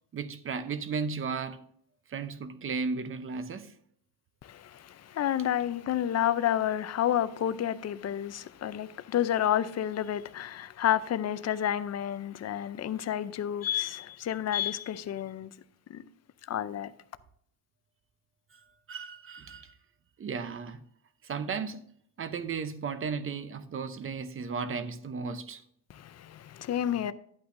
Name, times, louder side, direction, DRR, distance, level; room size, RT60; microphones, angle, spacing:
voice 1, 0.1-1.6 2.1-3.7 18.5-18.6 18.9-19.8 20.2-20.8 21.2-21.8 22.2-25.6, right 5 dB, 30° right, 0.7 m, -35 dB
voice 2, 4.4-15.5 15.9-16.0 16.5-16.9 25.9-27.1, left 10 dB, 40° left, 0.5 m, -30 dB
11.0 x 8.7 x 2.6 m
cardioid pair, 160°, 40 cm